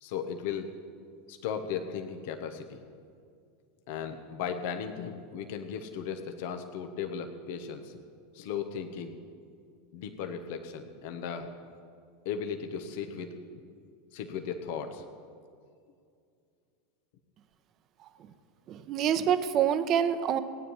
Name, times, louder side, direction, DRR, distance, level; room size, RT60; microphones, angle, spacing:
voice 1, 0.0-0.7 1.3-2.8 3.9-8.0 8.3-9.2 9.9-11.5 12.2-13.7 14.1-15.0, left 7 dB, 60° left, 6 dB, 1.1 m, -36 dB
voice 2, 18.7-20.4, right 9 dB, 40° right, 11 dB, 0.9 m, -26 dB
17.0 x 9.5 x 7.3 m, 2.3 s
hypercardioid pair, 85°, 0 cm